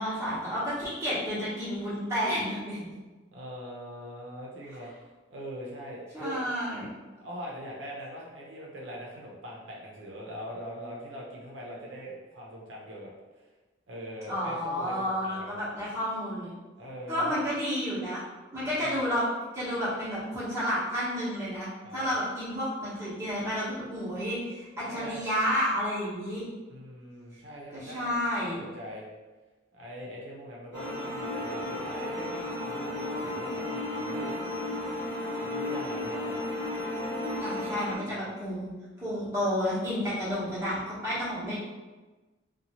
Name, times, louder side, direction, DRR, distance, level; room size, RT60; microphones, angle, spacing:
voice 1, 0.0-2.9 6.1-6.9 14.3-16.5 17.1-18.2 18.5-19.2 19.5-26.4 27.7-28.6 37.4-38.7 39.0-41.6, equal, 15° right, -11 dB, 1.0 m, -31 dB
voice 2, 3.3-4.9 5.3-6.4 7.2-13.1 13.9-15.6 16.8-17.4 18.6-19.0 21.8-22.2 24.8-25.2 26.7-28.1 28.4-29.1 29.7-34.4 35.4-36.4 38.1-38.5, equal, 90° right, -3 dB, 0.7 m, -42 dB
sound 1, 30.7-38.0, left 1 dB, 20° left, 1.2 m, -33 dB
2.7 x 2.3 x 2.9 m, 1.2 s
head